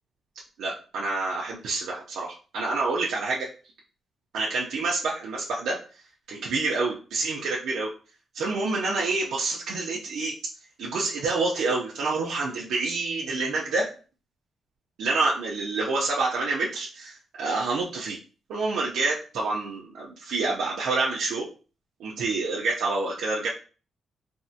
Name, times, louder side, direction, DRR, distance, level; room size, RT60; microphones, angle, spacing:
voice 1, 0.6-3.5 4.3-5.8 6.3-7.9 8.3-10.3 10.8-13.9 15.0-18.2 18.5-21.5 22.0-23.5, right 3 dB, 85° right, -4 dB, 0.5 m, -27 dB
3.4 x 2.1 x 2.7 m, 0.37 s
wide cardioid pair, 165°, 0 cm